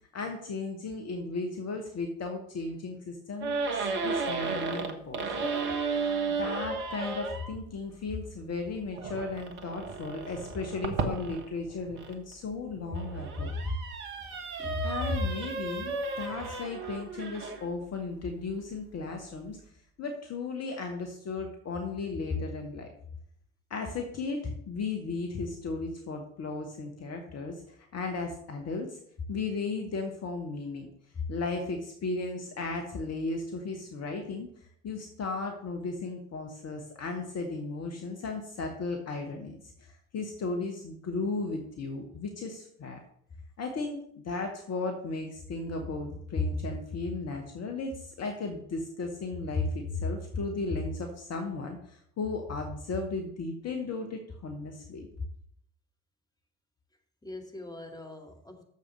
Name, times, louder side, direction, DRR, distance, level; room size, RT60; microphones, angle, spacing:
voice 1, 0.1-5.6 6.4-13.7 14.8-19.6 20.0-22.9 23.7-29.0 29.3-30.9 31.3-34.5 34.8-39.6 40.1-43.0 43.6-55.1, left 3 dB, 35° left, 3 dB, 1.4 m, -35 dB
sound 1, 3.4-7.5 9.0-12.1 12.8-17.7, right 4 dB, 65° right, 1.4 m, -34 dB
voice 2, 57.2-58.6, left 2 dB, 10° left, 1 dB, 2.0 m, -44 dB
6.9 x 6.6 x 6.7 m, 0.67 s
figure-of-eight pair, 60°, 46 cm